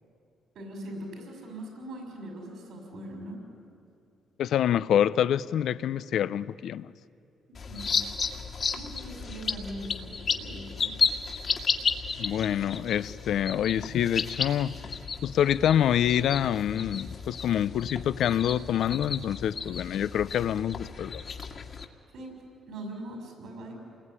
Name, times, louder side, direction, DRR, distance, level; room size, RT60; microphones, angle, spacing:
voice 1, 0.5-3.4 7.7-7.9 8.7-11.0 22.1-22.3 22.7-23.8, right 1 dB, 75° right, 2 dB, 6.2 m, -41 dB
voice 2, 4.4-6.9 12.2-14.7 15.2-21.2, left 10 dB, 75° left, 17 dB, 0.6 m, -26 dB
sound 1, 7.5-21.8, left 5 dB, 50° left, 2.1 m, -33 dB
28.0 x 21.0 x 9.9 m, 2.4 s
cardioid pair, 90°, 0 cm